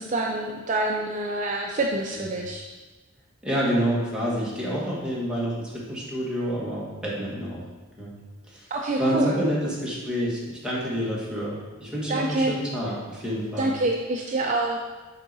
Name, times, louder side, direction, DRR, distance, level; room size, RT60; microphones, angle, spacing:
voice 1, 0.0-2.6 8.7-9.4 12.1-12.5 13.6-14.8, right 2 dB, 40° right, 0 dB, 0.5 m, -26 dB
voice 2, 3.4-7.6 8.0-8.2 8.5-8.6 9.0-13.8, equal, 5° right, -7 dB, 1.5 m, -28 dB
6.3 x 4.8 x 4.0 m, 1.2 s
head